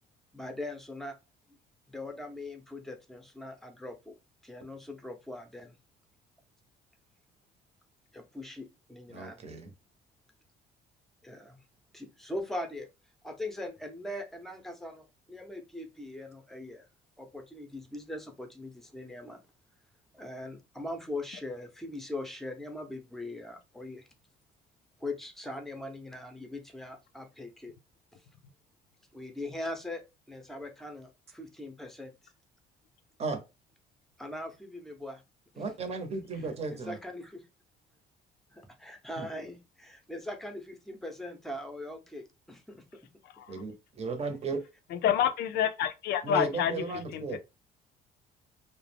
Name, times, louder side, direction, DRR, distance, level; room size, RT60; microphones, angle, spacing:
voice 1, 0.3-1.1 1.9-4.2 4.4-5.7 8.1-9.5 11.2-11.6 11.9-12.9 13.2-16.9 17.2-19.4 20.1-24.1 25.0-27.7 29.1-32.1 34.2-35.2 35.5-35.6 36.7-37.5 38.5-42.8, left 1 dB, ahead, 0.6 m, -41 dB
voice 2, 9.1-9.7 33.2-33.4 35.6-37.0 39.2-39.3 43.5-44.6 46.2-47.4, right 4 dB, 40° right, 0.7 m, -35 dB
voice 3, 45.0-46.7 47.1-47.2, left 10 dB, 75° left, 0.5 m, -27 dB
2.3 x 2.1 x 3.3 m
cardioid pair, 110°, 17 cm